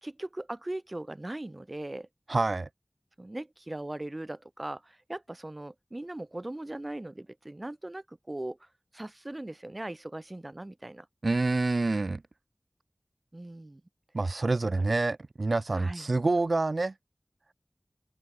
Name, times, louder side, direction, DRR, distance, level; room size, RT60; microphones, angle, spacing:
voice 1, 0.0-2.1 3.2-8.7 8.9-11.1 13.3-13.8 15.7-16.1, right 1 dB, 35° right, 1.8 m, -39 dB
voice 2, 2.3-2.7 11.2-12.2 14.1-16.9, right 3 dB, 75° right, 1.4 m, -27 dB
open air
wide cardioid pair, 55°, 0 cm